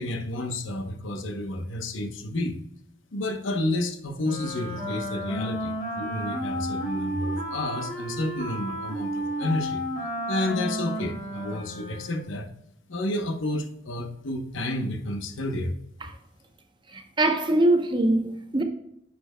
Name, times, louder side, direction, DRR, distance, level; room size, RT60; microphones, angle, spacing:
voice 1, 0.0-2.6 3.1-9.8 10.3-12.5 12.9-15.7, left 1 dB, 80° left, 0.9 m, -30 dB
Wind instrument woodwind instrument, 4.2-12.4, equal, 45° left, 2.7 m, -32 dB
voice 2, 16.9-18.6, right 1 dB, 25° right, 0.8 m, -22 dB
9.9 x 6.8 x 2.2 m
head